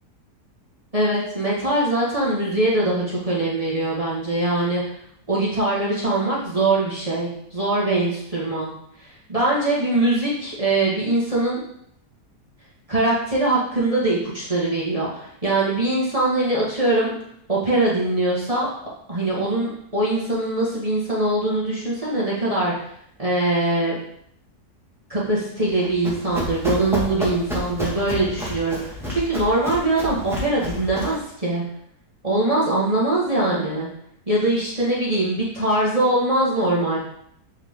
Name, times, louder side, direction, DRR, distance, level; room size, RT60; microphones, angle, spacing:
voice 1, 0.9-4.8 5.3-8.7 9.0-11.6 12.9-17.1 17.5-18.7 19.1-22.9 23.2-24.0 25.1-31.6 32.2-33.9 34.3-37.0, right 2 dB, 20° right, -6 dB, 1.8 m, -22 dB
Run, 25.7-31.2, left 1 dB, ahead, 1.9 m, -30 dB
8.4 x 4.8 x 3.8 m, 0.70 s
omnidirectional pair, 1.8 m